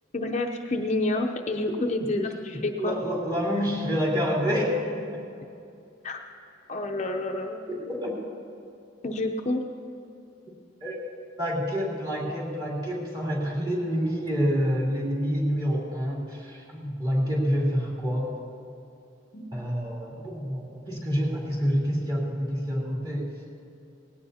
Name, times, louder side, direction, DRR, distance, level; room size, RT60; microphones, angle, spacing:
voice 1, 0.1-3.0 6.0-6.2 6.7-7.6 9.0-9.6 19.3-19.4, left 2 dB, 40° left, 3 dB, 0.7 m, -28 dB
voice 2, 2.8-5.3 7.7-8.1 10.8-11.0 11.4-18.3 19.5-23.3, equal, 25° right, -4 dB, 3.1 m, -27 dB
19.5 x 16.5 x 2.8 m, 2.6 s
head